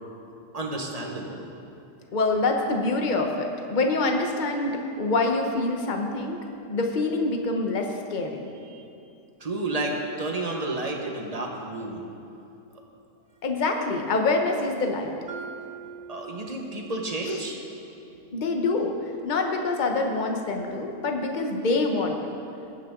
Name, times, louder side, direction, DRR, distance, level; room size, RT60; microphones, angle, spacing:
voice 1, 0.5-1.5 8.7-8.8 9.4-12.0 16.1-17.6, right 2 dB, 25° right, 0 dB, 1.4 m, -31 dB
voice 2, 2.1-8.4 13.4-15.1 17.3-17.4 18.3-22.3, left 3 dB, 35° left, 3 dB, 1.1 m, -26 dB
Mallet percussion, 15.3-19.3, right 6 dB, 55° right, 0.6 m, -45 dB
21.0 x 9.1 x 3.8 m, 2.7 s
omnidirectional pair, 1.6 m